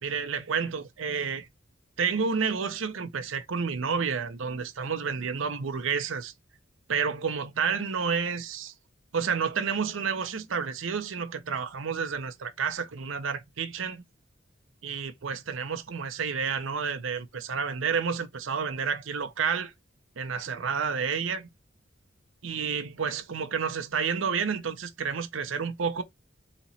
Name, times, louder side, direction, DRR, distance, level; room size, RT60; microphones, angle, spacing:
voice 1, 0.0-1.5 2.0-6.3 6.9-8.7 9.1-14.0 14.8-19.7 20.2-21.5 22.4-26.0, right 6 dB, 75° right, 0.6 m, -30 dB
4.3 x 2.9 x 4.1 m
head